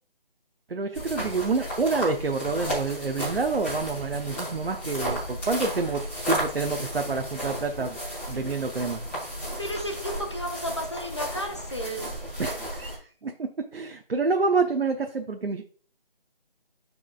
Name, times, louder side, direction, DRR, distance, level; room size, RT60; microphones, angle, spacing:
voice 1, 0.7-8.0 8.3-9.0 12.4-15.6, right 4 dB, 85° right, 4 dB, 0.9 m, -28 dB
sound 1, 0.9-13.0, equal, 10° left, 2.8 m, -33 dB
voice 2, 9.6-12.1, equal, 30° left, 3 dB, 0.8 m, -33 dB
11.5 x 4.8 x 2.4 m, 0.43 s
figure-of-eight pair, 175°, 29 cm